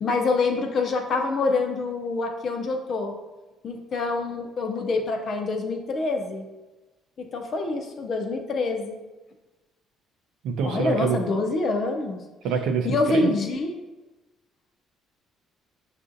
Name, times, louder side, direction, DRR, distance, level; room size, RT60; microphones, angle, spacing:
voice 1, 0.0-3.1 3.6-6.4 7.2-9.0 10.6-12.2 12.8-13.7, left 3 dB, 35° left, 4 dB, 0.5 m, -26 dB
voice 2, 10.4-11.2 12.4-13.3, right 5 dB, 75° right, 6 dB, 0.4 m, -25 dB
6.5 x 2.5 x 2.6 m, 1.1 s
cardioid pair, 165°, 0 cm